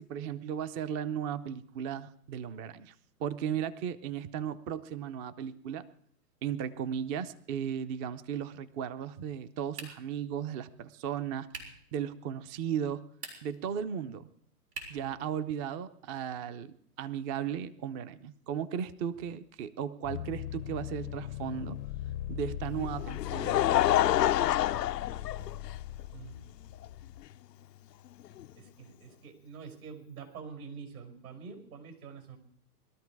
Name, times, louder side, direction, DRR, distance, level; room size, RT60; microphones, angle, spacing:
voice 1, 0.0-2.9 3.2-5.9 6.4-11.5 11.9-13.0 13.4-14.3 14.9-21.8 22.3-23.8 24.2-24.7, right 8 dB, 25° right, 14 dB, 0.6 m, -36 dB
sound 1, 9.7-10.2 11.5-11.9 13.1-13.6 14.7-15.1, right 4 dB, 85° right, 5.4 m, -44 dB
sound 2, 20.0-27.3, left 12 dB, 45° left, 0.6 m, -39 dB
Laughter, 22.8-26.0 26.8-26.9 28.4-28.5, left 13 dB, 90° left, 0.6 m, -27 dB
voice 2, 28.5-32.4, right 5 dB, 65° right, 5 dB, 5.6 m, -46 dB
21.0 x 13.0 x 4.7 m, 0.64 s
hypercardioid pair, 130°, 47 cm